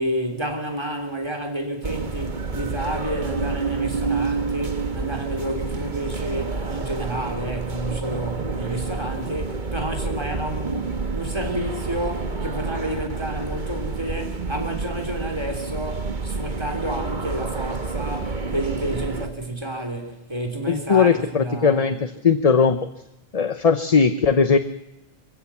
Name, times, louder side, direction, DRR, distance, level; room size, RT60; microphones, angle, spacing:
voice 1, 0.0-22.0, right 1 dB, 25° right, 3.7 m, -30 dB
sound 1, 1.8-19.3, right 4 dB, 45° right, 1.6 m, -29 dB
voice 2, 20.7-22.9 23.3-24.6, left 5 dB, 35° left, 0.9 m, -19 dB
25.5 x 15.5 x 7.2 m
omnidirectional pair, 1.1 m